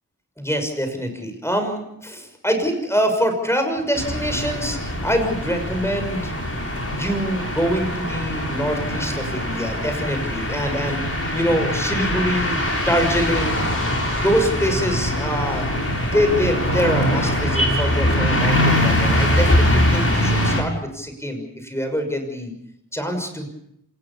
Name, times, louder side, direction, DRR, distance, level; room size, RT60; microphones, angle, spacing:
voice 1, 0.4-6.3 6.9-11.0 11.3-12.6 12.9-13.6 14.2-22.5 22.9-23.5, equal, 5° left, 5 dB, 6.3 m, -24 dB
sound 1, 4.0-20.6, left 1 dB, 35° left, 6.7 m, -22 dB
27.0 x 20.0 x 7.1 m, 0.78 s
wide cardioid pair, 60°, 39 cm